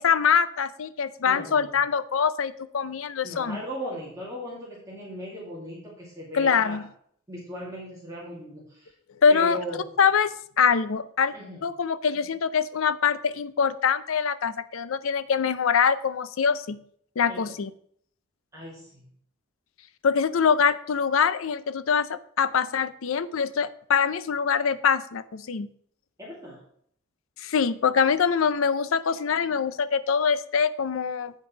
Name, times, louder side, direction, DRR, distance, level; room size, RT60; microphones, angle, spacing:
voice 1, 0.0-3.6 6.3-6.8 9.2-9.6 10.0-11.3 11.6-16.8 17.2-17.7 20.0-25.7 27.4-31.3, left 6 dB, 80° left, 15 dB, 0.5 m, -24 dB
voice 2, 1.2-1.8 3.2-6.8 7.3-8.9 9.3-9.8 11.3-11.6 17.3-17.5 18.5-19.1 26.2-26.6, equal, 15° right, -6 dB, 2.1 m, -38 dB
8.4 x 5.2 x 5.8 m, 0.63 s
head